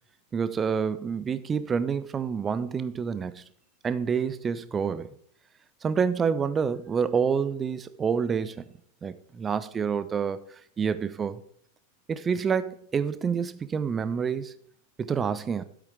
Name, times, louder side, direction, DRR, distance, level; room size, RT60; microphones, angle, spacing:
voice 1, 0.3-3.4 3.8-5.1 5.8-8.6 9.0-10.4 10.8-11.4 12.1-14.5 15.0-15.6, right 6 dB, 20° right, 0.7 m, -28 dB
12.5 x 8.4 x 3.4 m
figure-of-eight pair, 90°, 0 cm